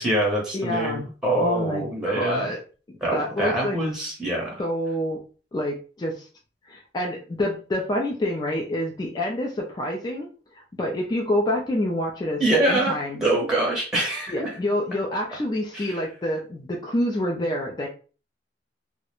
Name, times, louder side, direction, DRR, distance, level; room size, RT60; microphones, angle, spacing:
voice 1, 0.0-2.5 3.0-4.6 12.4-14.5 15.7-15.9, right 1 dB, 5° right, -2 dB, 0.7 m, -25 dB
voice 2, 0.5-1.1 1.4-2.6 3.1-3.8 4.6-5.2 5.5-6.3 6.7-10.3 10.8-13.2 14.3-17.9, left 1 dB, 25° left, 0 dB, 0.3 m, -27 dB
2.3 x 2.1 x 2.9 m, 0.36 s
head